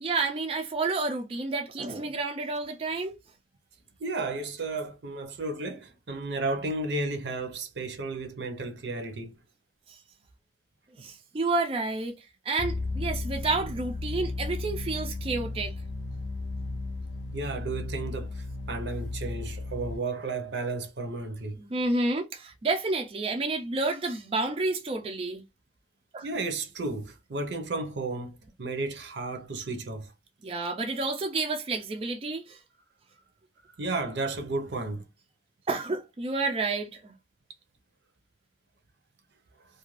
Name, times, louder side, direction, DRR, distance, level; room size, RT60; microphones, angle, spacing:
voice 1, 0.0-3.2 9.9-10.0 11.0-12.2 12.4-15.8 21.6-25.4 26.1-26.3 30.4-32.6 35.7-37.1, right 3 dB, 30° right, 0.3 m, -30 dB
voice 2, 4.0-9.3 17.3-21.6 26.2-30.1 33.7-35.0, right 3 dB, 75° right, 0.6 m, -33 dB
sound 1, 12.6-20.0, left 2 dB, 80° left, 0.4 m, -34 dB
2.4 x 2.2 x 3.0 m
head